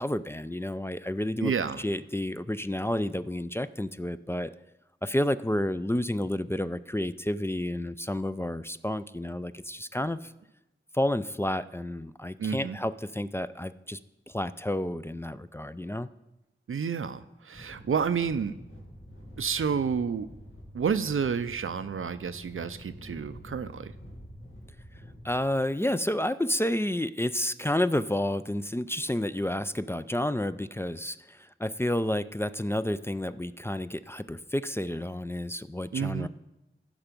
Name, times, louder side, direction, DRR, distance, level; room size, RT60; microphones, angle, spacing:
voice 1, 0.0-1.5 1.8-4.5 5.0-10.3 10.9-14.0 14.3-16.1 25.2-36.3, left 1 dB, 10° left, 13 dB, 0.3 m, -30 dB
voice 2, 1.4-1.8 12.4-12.8 16.7-18.6 19.4-20.3 20.7-23.9 35.9-36.3, right 6 dB, 85° right, 12 dB, 0.5 m, -30 dB
sound 1, 17.5-25.4, equal, 85° left, 2.4 m, -47 dB
14.5 x 6.0 x 5.2 m, 0.96 s
wide cardioid pair, 55°, 21 cm